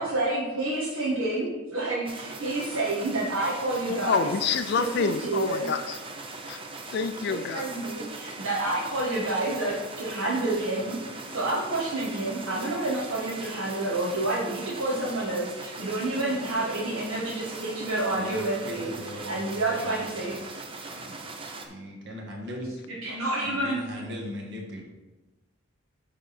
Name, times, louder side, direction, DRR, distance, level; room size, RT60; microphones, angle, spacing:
voice 1, 0.0-4.3 5.0-5.7 7.3-18.9 19.3-20.4 22.9-23.8, right 2 dB, 80° right, -7 dB, 1.5 m, -29 dB
sound 1, 2.1-21.7, right 3 dB, 25° right, 0.6 m, -40 dB
voice 2, 3.8-6.0 6.4-6.6 6.9-7.6, left 5 dB, 50° left, 9 dB, 0.3 m, -27 dB
voice 3, 18.1-20.3 20.9-21.1 21.5-22.7 23.4-24.9, equal, 55° right, 0 dB, 1.5 m, -39 dB
9.2 x 3.8 x 4.2 m, 1.1 s
head